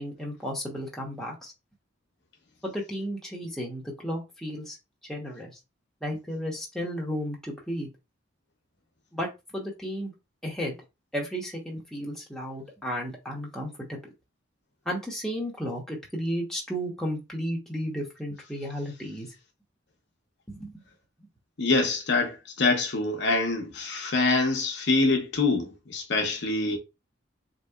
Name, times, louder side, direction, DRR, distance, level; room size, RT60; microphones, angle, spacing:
voice 1, 0.0-1.5 2.6-4.8 5.1-5.5 6.0-7.9 9.1-10.1 10.4-10.8 11.1-14.0 14.9-19.3 20.5-20.7, equal, ahead, 0.9 m, -33 dB
voice 2, 21.6-26.8, left 3 dB, 55° left, 0.7 m, -25 dB
3.9 x 2.8 x 2.3 m
head